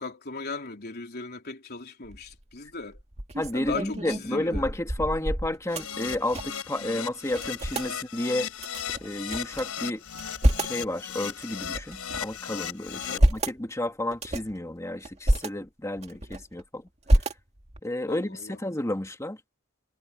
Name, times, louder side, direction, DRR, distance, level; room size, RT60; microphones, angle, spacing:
voice 1, 0.0-3.0 3.5-4.7 7.8-8.0 12.9-13.3 18.1-18.6, left 4 dB, 50° left, 3.5 m, -38 dB
sound 1, 2.0-2.4 2.9-6.7 6.9-7.0 7.3-7.9 8.6-9.6 10.1-10.8 11.4-12.4 12.9-13.6 14.1-14.6 15.0-15.5 16.0-16.6 17.1-17.8, right 1 dB, 30° right, 2.1 m, -27 dB
voice 2, 3.4-8.5 9.0-10.0 10.6-16.9 17.8-19.4, left 1 dB, 15° left, 1.8 m, -31 dB
Keyboard (musical), 5.7-13.2, left 8 dB, 90° left, 4.4 m, -36 dB
head